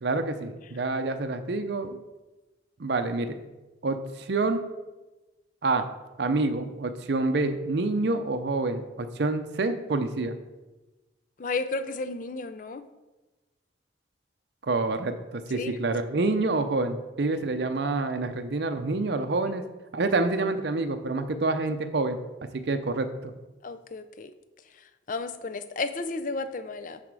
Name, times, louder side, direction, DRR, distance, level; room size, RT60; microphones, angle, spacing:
voice 1, 0.0-2.0 2.8-3.4 3.8-4.6 5.6-5.8 6.2-10.4 14.7-19.6 19.9-22.2 22.5-23.3, right 3 dB, 60° right, 7 dB, 0.5 m, -27 dB
voice 2, 11.4-12.8 15.5-15.8 23.6-24.3 24.7-27.0, left 3 dB, 45° left, 11 dB, 0.5 m, -33 dB
9.7 x 4.2 x 4.8 m, 1.1 s
head